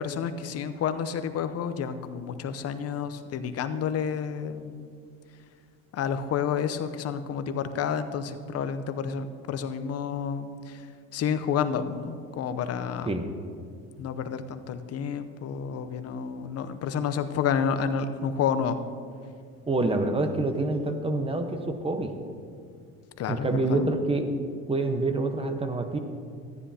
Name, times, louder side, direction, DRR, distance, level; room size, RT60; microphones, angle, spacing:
voice 1, 0.0-4.9 5.9-10.8 11.1-13.1 14.0-18.8 23.2-23.9, left 7 dB, 50° left, 10 dB, 0.8 m, -30 dB
voice 2, 19.7-22.1 23.3-24.3 24.7-26.0, right 2 dB, 15° right, 6 dB, 1.1 m, -27 dB
13.5 x 9.9 x 2.9 m, 2.2 s
supercardioid pair, 75°, 32 cm